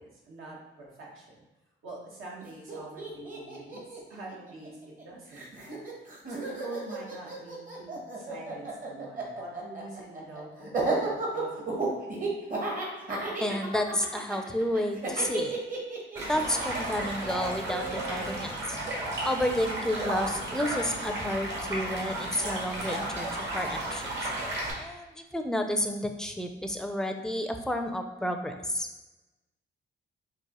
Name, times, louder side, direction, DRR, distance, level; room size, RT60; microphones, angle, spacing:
voice 1, 0.0-1.4 1.8-5.8 6.3-11.9, right 2 dB, 85° right, -4 dB, 1.3 m, -45 dB
Laughter, 2.4-2.5 2.7-5.0 5.3-18.3, right 3 dB, 45° right, 1.0 m, -34 dB
voice 2, 13.4-15.5 16.3-18.8 19.2-23.3 23.5-24.3 24.8-28.9, left 1 dB, 5° left, 5 dB, 0.4 m, -31 dB
Stream, 16.1-24.7, right 1 dB, 65° right, 1.5 m, -33 dB
4.6 x 2.8 x 3.0 m, 1.1 s
cardioid pair, 100°, 20 cm